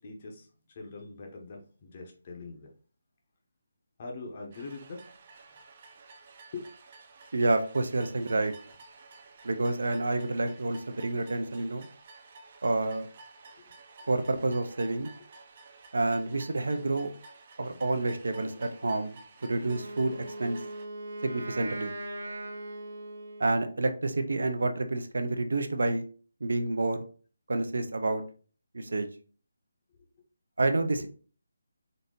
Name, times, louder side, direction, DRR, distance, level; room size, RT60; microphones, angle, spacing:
voice 1, 0.0-2.7 4.0-5.0 6.5-6.6 13.5-13.7 30.0-30.1 31.0-31.1, left 3 dB, 30° left, 1 dB, 0.7 m, -43 dB
sound 1, 4.5-20.9, right 3 dB, 30° right, 0.5 m, -52 dB
voice 2, 7.3-8.5 9.4-11.8 12.6-13.1 14.1-15.1 15.9-17.1 17.6-19.2 19.4-20.6 21.2-21.9 23.4-26.0 26.4-27.0 27.5-28.2 28.7-29.1 30.6-31.1, right 2 dB, 75° right, 7 dB, 0.6 m, -28 dB
Wind instrument woodwind instrument, 19.6-23.7, right 1 dB, 50° right, 1.2 m, -40 dB
4.0 x 2.7 x 3.6 m, 0.40 s
hypercardioid pair, 175°, 0 cm